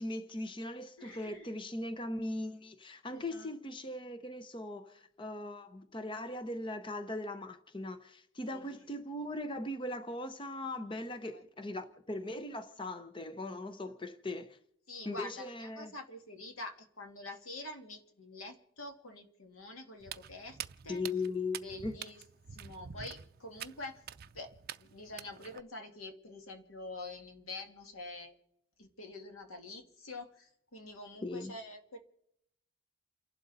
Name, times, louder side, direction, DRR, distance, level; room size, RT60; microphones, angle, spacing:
voice 1, 0.0-14.6 15.0-15.9 20.9-22.0 31.2-31.5, left 2 dB, 25° left, 0.8 m, -39 dB
voice 2, 1.0-1.5 3.1-3.5 8.5-8.9 9.1-9.2 11.2-11.4 14.9-20.6 20.8-21.0 21.6-22.2 22.5-24.0 24.3-24.5 24.8-28.3 28.8-32.0, left 2 dB, 90° left, 2.1 m, -46 dB
Walk footsteps, 20.0-25.6, right 9 dB, 45° right, 0.5 m, -47 dB
29.5 x 11.5 x 4.1 m
head